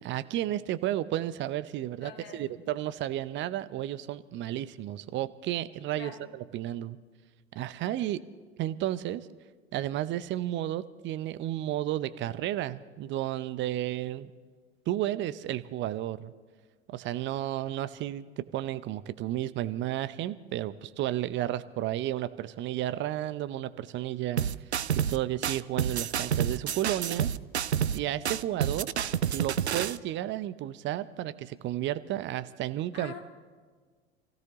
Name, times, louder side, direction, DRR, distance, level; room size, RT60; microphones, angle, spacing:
voice 1, 0.0-7.0 7.5-8.2 8.6-9.3 9.7-14.3 14.9-16.3 16.9-24.5 24.9-27.3 27.9-28.9 29.3-33.2, right 13 dB, 35° right, 15 dB, 0.7 m, -32 dB
voice 2, 2.0-2.6 5.9-6.3 28.3-28.5 32.9-33.2, left 5 dB, 70° left, 3 dB, 2.4 m, -45 dB
sound 1, 24.4-25.2 25.4-28.0 28.2-30.0, right 8 dB, 85° right, 0.5 m, -29 dB
28.5 x 16.5 x 2.9 m, 1.5 s
figure-of-eight pair, 80°, 32 cm